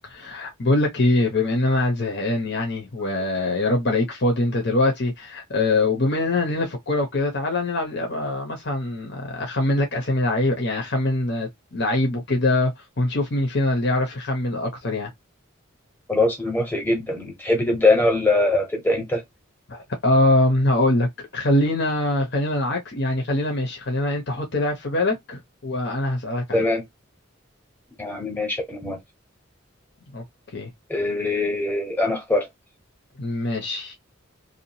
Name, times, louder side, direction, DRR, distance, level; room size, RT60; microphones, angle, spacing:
voice 1, 0.1-12.7 13.0-15.1 19.7-26.7 30.1-30.2 30.5-30.7 33.2-33.9, left 2 dB, 55° left, 0.9 m, -23 dB
voice 2, 16.1-19.2 26.5-26.8 28.0-29.0 30.9-32.5, left 2 dB, 10° left, 1.0 m, -22 dB
2.7 x 2.4 x 2.8 m
head